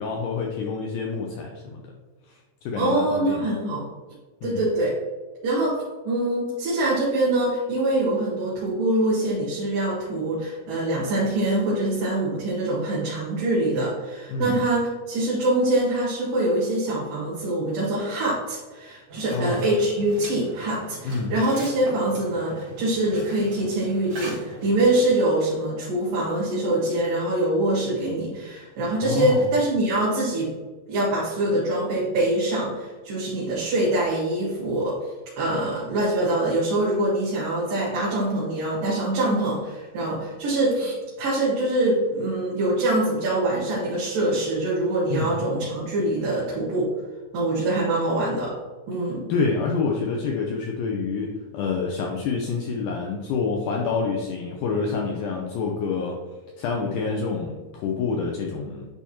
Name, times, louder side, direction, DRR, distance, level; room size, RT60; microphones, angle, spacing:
voice 1, 0.0-1.8 2.3-3.5 4.4-4.6 14.3-14.6 19.3-19.6 21.0-21.3 29.0-29.5 45.1-45.3 48.9-56.2 56.6-58.9, left 4 dB, 85° left, 0 dB, 1.8 m, -27 dB
voice 2, 2.8-3.8 4.4-4.9 5.4-30.5 30.9-35.0 35.4-46.9 47.3-48.5 48.9-49.2, right 1 dB, 70° right, -7 dB, 3.2 m, -24 dB
sound 1, 19.1-25.2, right 1 dB, 55° right, 3.3 m, -40 dB
10.5 x 3.5 x 2.9 m, 1.3 s
omnidirectional pair, 4.3 m